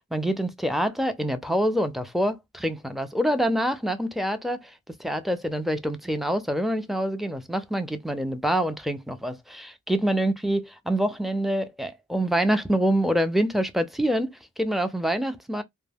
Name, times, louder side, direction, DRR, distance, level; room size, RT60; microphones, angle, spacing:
voice 1, 0.1-15.6, right 1 dB, ahead, 0.5 m, -26 dB
2.2 x 2.2 x 3.3 m
wide cardioid pair, 60°, 33 cm